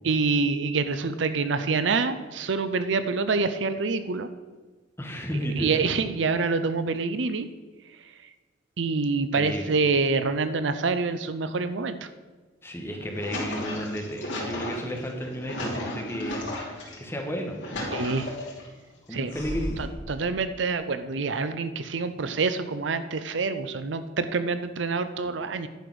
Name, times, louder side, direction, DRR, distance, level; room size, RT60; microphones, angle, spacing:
voice 1, 0.0-4.3 5.6-7.5 8.8-12.1 17.9-18.3 19.1-19.3 20.1-25.7, right 4 dB, 75° right, 11 dB, 0.6 m, -26 dB
voice 2, 5.0-5.8 9.3-9.8 12.6-16.4 17.0-17.7 19.1-19.9, equal, 15° left, 1 dB, 1.4 m, -32 dB
sound 1, 12.8-16.9 17.4-18.7 19.3-20.0, left 1 dB, 70° left, 2.8 m, -34 dB
10.5 x 5.0 x 6.2 m, 1.3 s
head